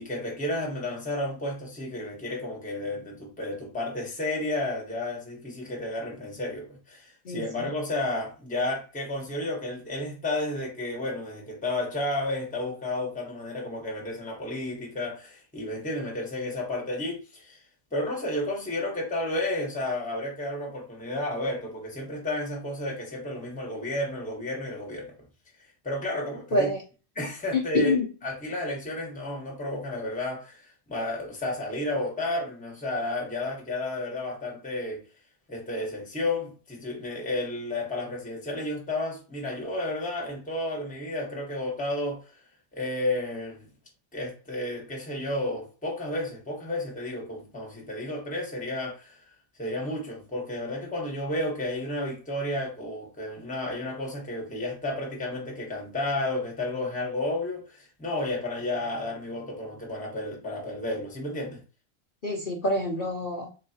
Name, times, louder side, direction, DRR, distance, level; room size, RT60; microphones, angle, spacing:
voice 1, 0.0-17.6 17.9-25.1 25.8-26.7 27.2-27.9 28.2-35.0 35.5-42.2 42.7-43.7 44.1-49.2 49.6-61.6, left 1 dB, 5° left, 0.8 m, -32 dB
voice 2, 26.5-26.8 27.5-28.1 62.2-63.5, left 2 dB, 45° left, 0.7 m, -26 dB
4.0 x 3.0 x 2.8 m
omnidirectional pair, 2.0 m